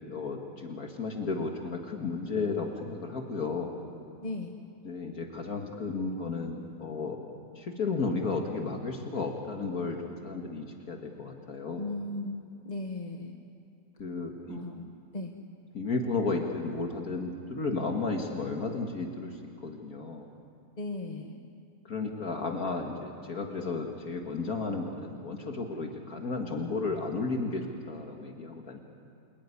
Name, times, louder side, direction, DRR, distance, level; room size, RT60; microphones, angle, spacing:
voice 1, 0.0-3.7 4.8-7.2 7.6-11.8 14.0-14.6 15.7-20.3 21.8-28.8, left 3 dB, 55° left, 2 dB, 2.2 m, -33 dB
voice 2, 4.2-4.6 11.8-13.4 14.5-15.4 20.8-21.4, left 2 dB, 25° left, 3 dB, 1.2 m, -37 dB
29.5 x 20.5 x 9.8 m, 2.7 s
omnidirectional pair, 1.8 m